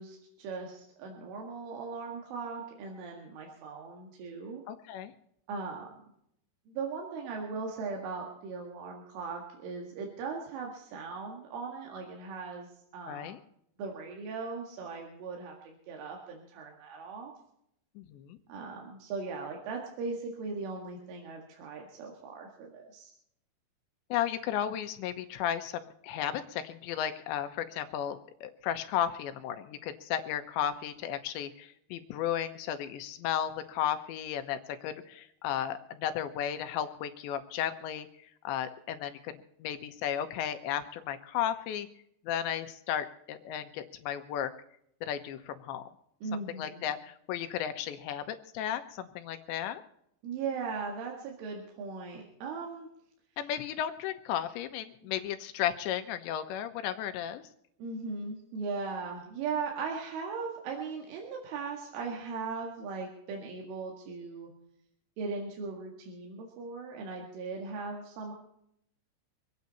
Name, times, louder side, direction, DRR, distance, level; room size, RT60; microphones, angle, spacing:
voice 1, 0.0-4.6 5.5-5.9 6.7-13.4 13.8-17.3 18.5-23.1 46.2-46.9 50.2-52.9 55.0-55.1 57.8-64.5 65.2-68.3, right 4 dB, 85° right, 0 dB, 4.4 m, -38 dB
voice 2, 4.7-5.1 13.1-13.4 18.0-18.4 24.1-38.1 38.4-39.3 39.6-41.9 42.2-44.5 45.0-45.8 46.3-49.8 53.4-57.4, left 10 dB, 80° left, 8 dB, 3.0 m, -34 dB
25.5 x 9.6 x 4.1 m, 0.73 s
omnidirectional pair, 5.5 m